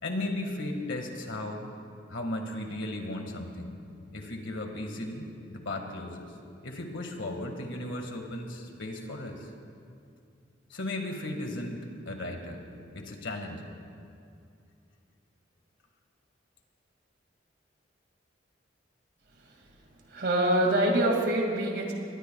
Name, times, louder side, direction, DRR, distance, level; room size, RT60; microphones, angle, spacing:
voice 1, 0.0-1.6 2.1-3.8 4.1-6.3 6.6-9.5 10.7-13.8, left 1 dB, 85° left, 4 dB, 1.8 m, -36 dB
voice 2, 20.1-21.9, right 1 dB, 55° right, 1 dB, 2.1 m, -25 dB
22.5 x 19.5 x 2.3 m, 2.4 s
head